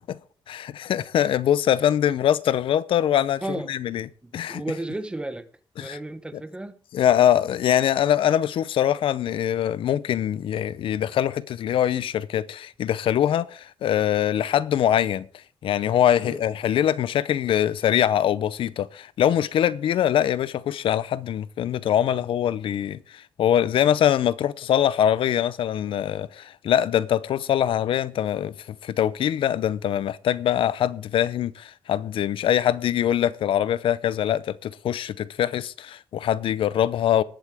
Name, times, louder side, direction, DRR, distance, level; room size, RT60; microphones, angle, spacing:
voice 1, 0.5-4.1 4.3-4.6 5.8-6.0 6.3-6.4 6.9-15.2 15.6-28.5 28.8-37.2, left 10 dB, 85° left, 0.6 m, -23 dB
voice 2, 4.5-5.5 5.8-6.7 16.2-16.4, right 2 dB, 10° right, 1.0 m, -32 dB
19.5 x 8.2 x 3.6 m
wide cardioid pair, 175°, 9 cm